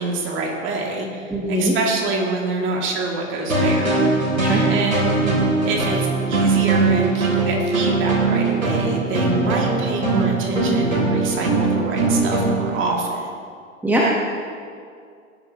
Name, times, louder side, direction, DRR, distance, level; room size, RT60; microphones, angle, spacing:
voice 1, 0.0-4.0 4.4-13.3, right 3 dB, 30° right, -1 dB, 2.8 m, -26 dB
voice 2, 1.3-1.7 4.4-4.6 13.8-14.1, equal, 5° right, -5 dB, 1.5 m, -20 dB
sound 1, 3.5-12.7, right 3 dB, 85° right, 3.5 m, -20 dB
19.0 x 12.5 x 3.1 m, 2.2 s
figure-of-eight pair, 100°, 40 cm